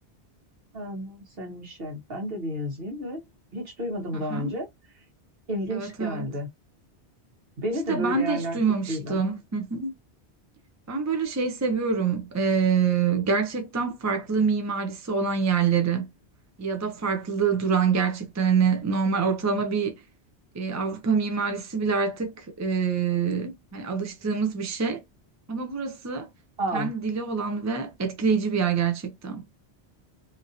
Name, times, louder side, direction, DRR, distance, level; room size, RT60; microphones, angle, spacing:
voice 1, 0.7-3.2 3.5-4.7 5.5-6.5 7.6-8.6 8.9-9.2 26.6-26.9, equal, 60° right, 1.3 m, -31 dB
voice 2, 4.1-4.5 5.7-6.3 7.9-9.9 10.9-16.1 16.6-20.0 20.5-25.0 25.5-26.3 26.7-29.4, right 5 dB, 25° right, 0.4 m, -26 dB
2.9 x 2.7 x 2.6 m
omnidirectional pair, 1.1 m